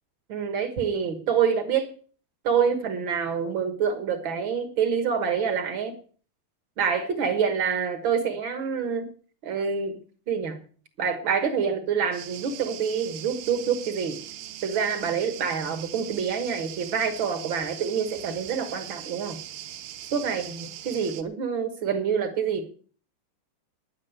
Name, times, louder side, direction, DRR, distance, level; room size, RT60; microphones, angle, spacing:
voice 1, 0.3-1.9 2.4-6.0 6.8-9.1 9.4-10.0 10.3-10.6 11.0-14.2 14.6-19.4 20.1-22.6, right 6 dB, 60° right, 8 dB, 1.3 m, -26 dB
sound 1, 12.1-21.2, right 11 dB, 80° right, 2.9 m, -40 dB
10.5 x 9.6 x 7.9 m, 0.44 s
omnidirectional pair, 4.1 m